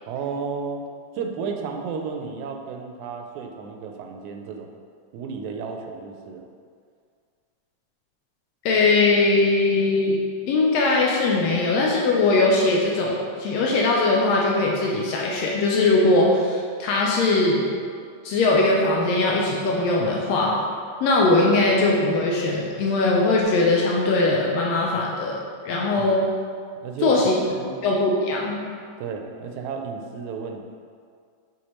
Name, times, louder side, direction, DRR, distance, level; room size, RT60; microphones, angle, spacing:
voice 1, 0.1-0.8 1.1-4.7 5.1-6.4 26.0-26.1 26.8-27.2 27.5-27.7 29.0-30.6, right 5 dB, 85° right, 3 dB, 2.0 m, -32 dB
voice 2, 8.6-10.2 10.5-17.6 18.2-20.6 21.0-25.4 25.6-26.3 27.0-27.4 27.8-28.6, left 2 dB, 75° left, -2 dB, 1.7 m, -20 dB
7.1 x 4.6 x 3.1 m, 2.1 s
omnidirectional pair, 3.4 m